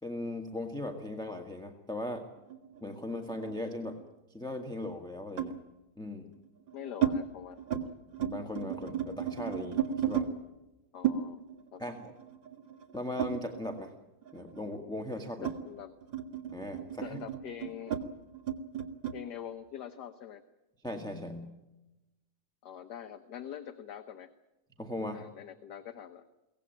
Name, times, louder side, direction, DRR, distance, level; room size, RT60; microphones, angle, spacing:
voice 1, 0.0-2.2 2.8-4.0 4.3-5.5 6.0-6.3 8.2-10.3 11.8-12.1 12.9-13.9 14.3-15.5 16.5-17.2 20.8-21.5 24.8-25.3, left 1 dB, ahead, 2 dB, 1.5 m, -38 dB
sound 1, 2.5-4.1 5.4-5.6 6.4-7.2 7.5-7.9 8.1-10.3 11.0-13.9 14.2-19.2, right 9 dB, 65° right, 2.4 m, -35 dB
voice 2, 6.7-8.0 10.9-11.4 11.7-11.8 15.4-15.9 17.0-18.0 19.1-20.4 22.6-24.3 25.1-26.2, left 9 dB, 60° left, 8 dB, 1.4 m, -44 dB
23.0 x 18.0 x 9.0 m, 1.0 s
omnidirectional pair, 2.3 m